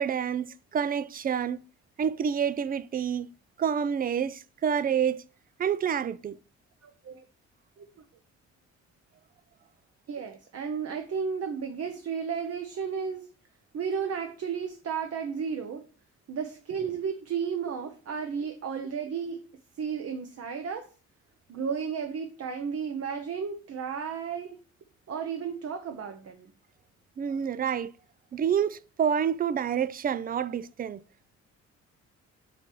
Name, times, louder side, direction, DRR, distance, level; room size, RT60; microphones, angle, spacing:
voice 1, 0.0-1.6 2.0-3.3 3.6-5.2 5.6-6.4 27.2-27.9 28.3-31.0, right 8 dB, 30° right, 0.4 m, -28 dB
voice 2, 6.8-7.2 7.8-7.9 10.1-13.3 13.7-15.8 16.3-19.4 19.8-20.9 21.5-24.6 25.1-26.5, right 6 dB, 55° right, 1.0 m, -33 dB
5.1 x 4.5 x 6.0 m
cardioid pair, 90°, 30 cm